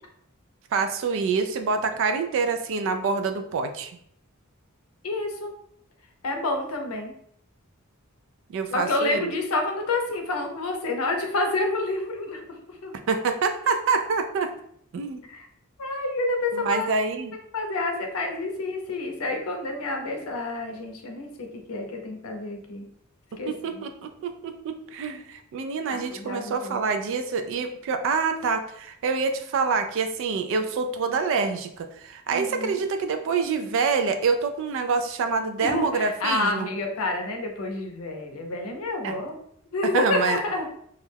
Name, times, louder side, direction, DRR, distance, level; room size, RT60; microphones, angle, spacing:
voice 1, 0.7-3.9 8.5-9.3 13.1-14.5 14.9-15.2 16.5-17.3 23.3-36.7 39.0-39.2 39.8-40.4, right 4 dB, 65° right, 7 dB, 0.3 m, -26 dB
voice 2, 5.0-5.5 6.2-7.1 8.7-12.4 12.7-12.9 15.3-15.5 15.8-16.9 17.5-22.9 23.4-23.8 25.9-26.8 32.3-32.8 35.6-39.4 39.7-40.7, left 2 dB, 90° left, 3 dB, 0.6 m, -29 dB
2.3 x 2.1 x 3.2 m, 0.69 s
head